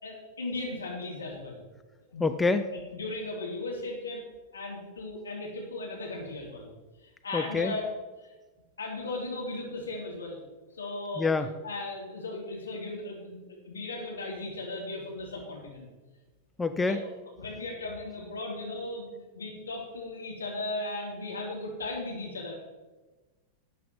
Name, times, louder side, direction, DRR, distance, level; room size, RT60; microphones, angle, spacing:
voice 1, 0.0-1.6 2.1-2.3 2.7-4.2 4.5-6.7 7.0-7.9 8.2-8.3 8.8-10.4 10.7-11.3 11.6-15.9 16.9-17.0 17.4-19.1 19.3-22.5, left 2 dB, 75° left, -1 dB, 3.0 m, -37 dB
voice 2, 2.2-2.6 7.3-7.7 11.2-11.5 16.6-17.0, left 4 dB, 10° left, 9 dB, 0.5 m, -26 dB
12.0 x 8.3 x 4.5 m, 1.2 s
figure-of-eight pair, 90°, 0 cm